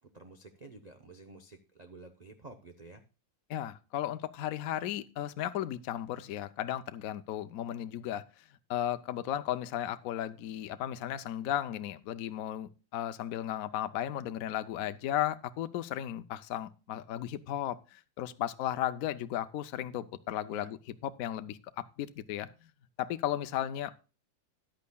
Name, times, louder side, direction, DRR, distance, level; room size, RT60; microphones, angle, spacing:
voice 1, 0.1-3.0 20.5-20.7, right 3 dB, 80° right, 6 dB, 0.3 m, -51 dB
voice 2, 3.5-8.4 8.7-20.8 21.0-22.5 23.0-23.9, left 11 dB, 70° left, 11 dB, 0.8 m, -35 dB
13.5 x 10.5 x 2.2 m, 0.32 s
omnidirectional pair, 2.0 m